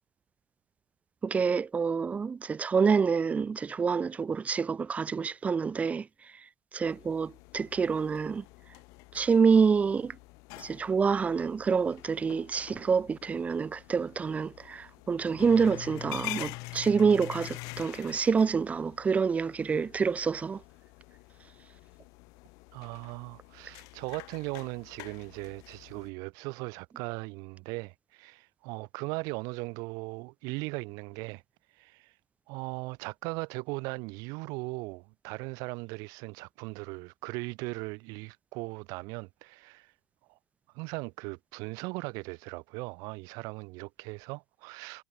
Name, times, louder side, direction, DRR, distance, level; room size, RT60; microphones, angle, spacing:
voice 1, 1.2-6.4 6.7-8.4 9.1-10.2 10.6-20.6, right 5 dB, 20° right, 0.7 m, -27 dB
sound 1, 6.9-26.1, left 25 dB, 55° left, 3.4 m, -46 dB
voice 2, 22.7-31.4 31.7-32.1 32.5-39.9 40.3-40.4 40.7-45.0, right 27 dB, 55° right, 4.7 m, -38 dB
hypercardioid pair, 90°, 7 cm